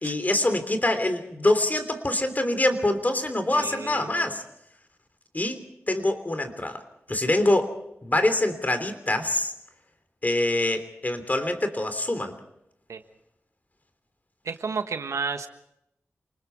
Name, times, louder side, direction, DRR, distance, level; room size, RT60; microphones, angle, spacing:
voice 1, 0.0-4.4 5.3-6.8 7.1-7.8 8.0-9.5 10.2-12.4, left 1 dB, 35° left, 8 dB, 3.2 m, -25 dB
voice 2, 3.5-4.4 12.9-13.0 14.4-15.5, right 5 dB, 85° right, 8 dB, 1.3 m, -32 dB
28.0 x 20.0 x 4.7 m, 0.79 s
cardioid pair, 40°, 5 cm